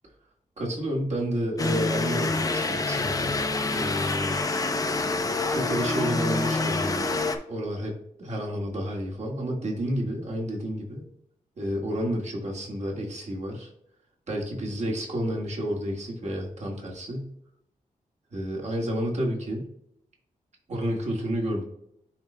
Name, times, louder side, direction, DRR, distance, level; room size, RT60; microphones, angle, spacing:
voice 1, 0.6-4.4 5.5-11.0 11.6-13.7 14.3-17.3 18.3-19.7 20.7-21.6, equal, 55° right, -1 dB, 1.7 m, -30 dB
sound 1, 1.6-7.4, left 3 dB, 25° left, 0.5 m, -27 dB
10.5 x 3.9 x 2.2 m, 0.74 s
wide cardioid pair, 155°, 14 cm